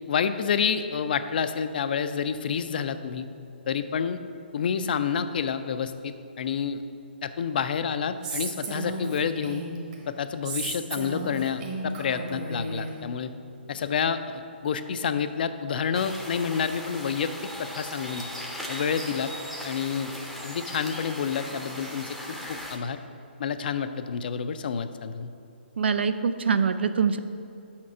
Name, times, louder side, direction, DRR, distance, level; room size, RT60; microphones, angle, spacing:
voice 1, 0.1-3.3 3.7-4.2 4.5-6.8 7.2-9.6 10.1-13.3 13.7-17.3 17.6-18.2 18.7-19.3 19.6-20.1 20.4-22.2 22.7-23.0 23.4-25.3, left 7 dB, 55° left, 10 dB, 0.4 m, -28 dB
Female speech woman speaking, 8.2-9.9 10.4-12.9, right 2 dB, 35° right, 1.2 m, -34 dB
sound 1, 15.9-22.8, equal, ahead, 0.6 m, -38 dB
voice 2, 25.8-27.2, right 6 dB, 70° right, 11 dB, 0.4 m, -24 dB
5.8 x 4.3 x 6.1 m, 2.6 s
hypercardioid pair, 140°, 6 cm